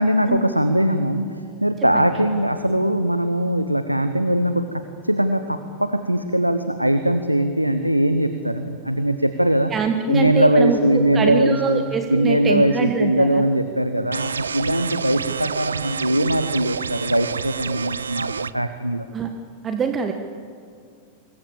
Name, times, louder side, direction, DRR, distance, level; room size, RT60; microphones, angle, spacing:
voice 1, 0.0-9.7 10.1-11.8 12.1-19.1, right 1 dB, 90° right, 10 dB, 1.0 m, -21 dB
voice 2, 9.7-13.4 19.1-19.3 19.6-20.1, right 5 dB, 25° right, 6 dB, 1.5 m, -24 dB
sound 1, 14.1-18.5, right 6 dB, 70° right, 0.6 m, -28 dB
25.5 x 21.5 x 7.3 m, 2.2 s
figure-of-eight pair, 90°, 0 cm